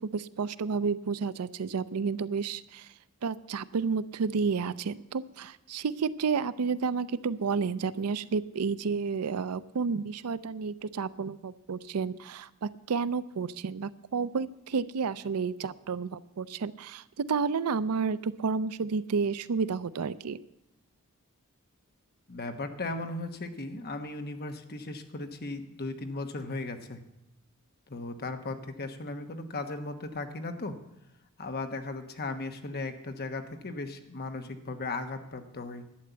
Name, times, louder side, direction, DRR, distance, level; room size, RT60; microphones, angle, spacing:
voice 1, 0.0-2.9 3.2-20.4, right 5 dB, 85° right, 17 dB, 0.5 m, -31 dB
voice 2, 22.3-27.0 27.9-30.8 31.4-35.8, left 2 dB, 45° left, 7 dB, 1.2 m, -37 dB
11.5 x 8.7 x 8.1 m, 0.84 s
head